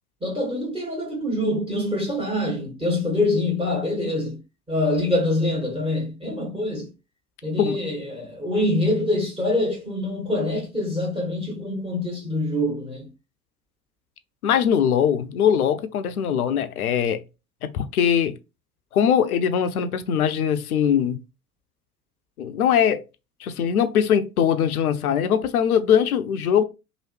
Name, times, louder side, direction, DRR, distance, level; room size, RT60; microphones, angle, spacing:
voice 1, 0.2-4.4 4.7-6.9 7.4-13.1, left 1 dB, 10° right, 1.4 m, -25 dB
voice 2, 14.4-17.2 17.6-18.4 18.9-21.2 22.4-23.0 23.4-26.6, left 8 dB, 80° left, 0.6 m, -21 dB
2.9 x 2.7 x 3.1 m
figure-of-eight pair, 75°, 43 cm